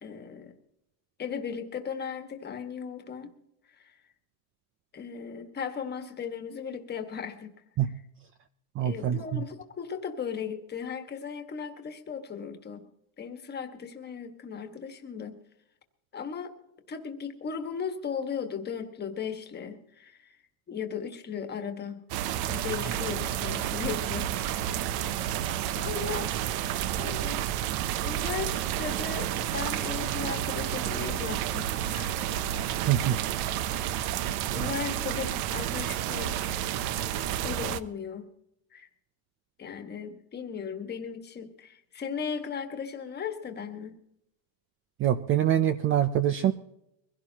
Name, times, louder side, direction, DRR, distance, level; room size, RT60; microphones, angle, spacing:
voice 1, 0.0-0.5 1.2-3.3 3.7-4.0 4.9-7.5 8.8-12.8 13.2-15.3 16.1-16.5 16.9-20.4 20.7-22.0 22.5-24.7 25.0-25.1 25.5-26.3 27.0-27.4 28.0-32.2 33.7-34.2 34.5-36.8 37.4-38.2 38.7-38.9 39.6-44.0, left 7 dB, 20° left, 6 dB, 1.6 m, -37 dB
voice 2, 8.8-9.4 32.9-33.2 45.0-46.5, right 10 dB, 30° right, 12 dB, 0.5 m, -24 dB
sound 1, 22.1-37.8, right 11 dB, 55° right, 0.8 m, -30 dB
23.0 x 16.5 x 2.9 m, 0.81 s
cardioid pair, 160°, 45 cm